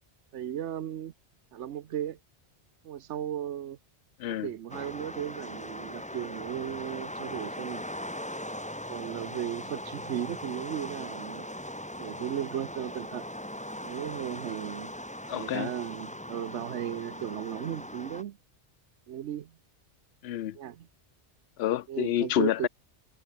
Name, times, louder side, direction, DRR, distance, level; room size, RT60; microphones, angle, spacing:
voice 1, 0.3-1.1 1.5-2.2 2.8-3.8 4.3-7.8 8.9-11.5 12.0-13.2 13.8-14.9 15.3-18.4 19.1-19.5 20.5-20.9 21.9-22.7, right 10 dB, 85° right, 1.0 m, -35 dB
voice 2, 4.2-4.5 15.3-15.7 20.2-20.6 21.6-22.7, left 12 dB, 70° left, 0.8 m, -28 dB
sound 1, 4.7-18.2, equal, 5° left, 2.4 m, -40 dB
omnidirectional pair, 1.2 m